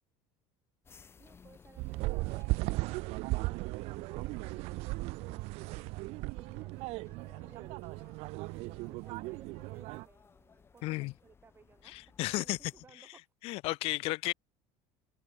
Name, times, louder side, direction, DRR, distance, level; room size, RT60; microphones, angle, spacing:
sound 1, 0.8-12.9, left 6 dB, 20° left, 3.2 m, -61 dB
voice 1, 1.2-2.5 2.8-5.7 6.0-7.0 7.4-8.4 8.9-13.3, right 5 dB, 20° right, 3.1 m, -61 dB
sound 2, 1.8-10.0, right 23 dB, 55° right, 0.7 m, -37 dB
voice 2, 10.8-11.1 11.9-12.6 13.4-14.3, left 21 dB, 50° left, 0.5 m, -33 dB
open air
cardioid pair, 155°, 12 cm